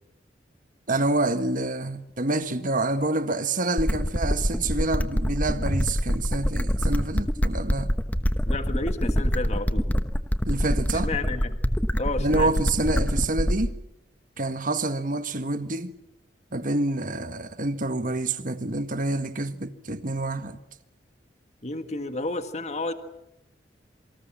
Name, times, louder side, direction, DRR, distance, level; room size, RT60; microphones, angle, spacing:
voice 1, 0.9-7.9 10.4-11.1 12.2-13.8 14.4-15.9 16.5-20.6, right 2 dB, 50° right, 1.6 m, -27 dB
sound 1, 3.8-13.8, equal, 10° left, 1.1 m, -25 dB
voice 2, 8.5-9.8 10.9-11.6 12.0-12.5 21.6-22.9, left 2 dB, 40° left, 1.8 m, -31 dB
27.5 x 25.0 x 7.5 m
head